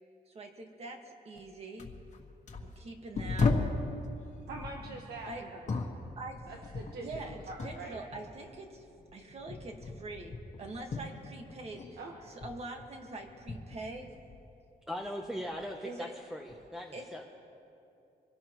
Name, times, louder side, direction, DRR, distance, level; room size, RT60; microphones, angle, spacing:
voice 1, 0.3-1.9 2.6-3.5 5.3-5.4 6.2-6.4 7.0-8.9 9.1-12.0 12.3-14.1 15.8-16.1 16.9-17.1, right 2 dB, 40° right, 2 dB, 1.7 m, -44 dB
sound 1, 1.3-1.5 1.8-3.9 4.5-7.8 8.1-11.9 12.2-14.5 15.0-15.7 16.5-16.7, left 3 dB, 45° left, 1.6 m, -37 dB
voice 2, 4.5-5.8 6.5-8.0 12.0-12.2, right 3 dB, 85° right, 0 dB, 1.4 m, -44 dB
voice 3, 14.9-17.3, equal, 5° right, 0 dB, 0.8 m, -40 dB
26.0 x 17.0 x 3.1 m, 2.7 s
wide cardioid pair, 160°, 16 cm